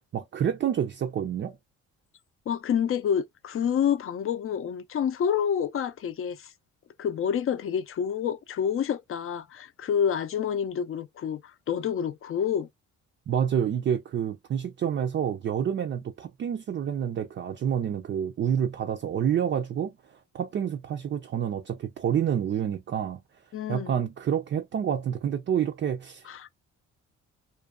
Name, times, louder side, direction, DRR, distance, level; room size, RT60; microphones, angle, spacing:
voice 1, 0.1-1.6 13.3-19.9 20.3-23.2 23.7-26.5, right 9 dB, 40° right, 0.4 m, -28 dB
voice 2, 2.5-6.5 7.0-12.7 23.5-24.0 26.3-26.5, left 8 dB, 45° left, 0.5 m, -28 dB
2.5 x 2.2 x 2.3 m
cardioid pair, 90°, 30 cm